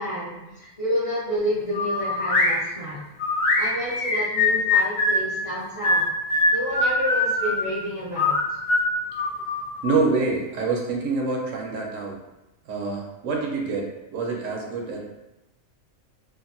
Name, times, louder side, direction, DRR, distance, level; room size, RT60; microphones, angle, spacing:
voice 1, 0.0-3.0 3.6-6.1 6.5-8.3, equal, 45° left, -9 dB, 0.4 m, -29 dB
sound 1, 1.7-2.5 3.2-5.3 5.8-7.6 8.2-10.0, left 2 dB, 75° left, 0.9 m, -22 dB
voice 2, 9.8-12.2 12.6-15.0, right 3 dB, 75° right, -1 dB, 1.0 m, -26 dB
2.7 x 2.4 x 2.6 m, 0.96 s
omnidirectional pair, 1.4 m